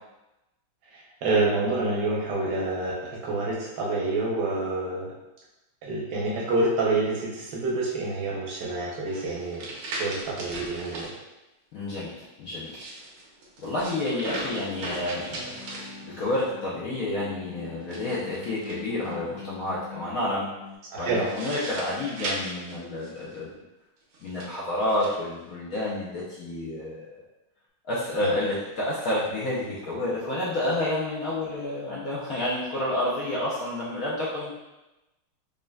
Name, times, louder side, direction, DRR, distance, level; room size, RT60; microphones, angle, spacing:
voice 1, 0.9-5.1 5.8-9.7 10.0-11.1 14.5-14.6 20.9-21.3 28.2-28.3, right 2 dB, 65° right, -4 dB, 1.2 m, -27 dB
sound 1, 9.1-11.1 12.5-16.4 17.8-19.1 21.0-23.4 24.1-25.2, right 2 dB, 85° right, 1.7 m, -38 dB
voice 2, 11.7-12.8 13.6-20.5 21.0-23.5 24.2-27.2 27.8-34.5, left 1 dB, 75° left, -7 dB, 0.8 m, -30 dB
sound 2, 14.2-20.7, left 5 dB, 40° left, 0.7 m, -44 dB
5.2 x 2.6 x 2.3 m, 1.0 s
omnidirectional pair, 2.3 m